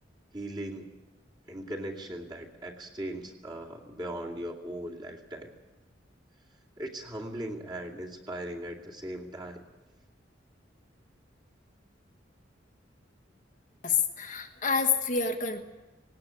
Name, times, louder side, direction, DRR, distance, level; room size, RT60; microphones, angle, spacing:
voice 1, 0.3-0.9 1.5-5.5 6.8-9.6, right 1 dB, 25° right, -1 dB, 2.5 m, -38 dB
voice 2, 13.8-15.6, left 5 dB, 45° left, 5 dB, 1.3 m, -28 dB
19.0 x 18.5 x 8.4 m, 1.1 s
head